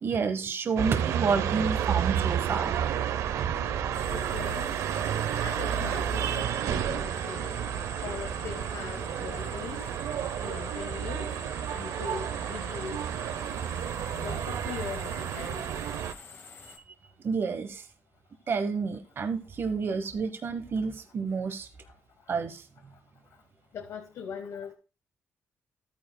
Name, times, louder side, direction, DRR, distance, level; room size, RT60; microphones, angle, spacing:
voice 1, 0.0-2.8 10.2-10.3 17.2-17.8 18.5-21.7 22.3-22.6, right 5 dB, 50° right, 1.1 m, -29 dB
sound 1, 0.8-16.1, right 9 dB, 90° right, 0.7 m, -31 dB
sound 2, 3.9-16.8, left 4 dB, 50° left, 1.7 m, -47 dB
voice 2, 4.1-4.7 5.4-7.5 8.0-9.8 10.4-11.3 11.7-13.1 14.1-15.7 23.7-24.7, left 6 dB, 70° left, 1.1 m, -40 dB
13.0 x 9.2 x 2.2 m
cardioid pair, 95°, 5 cm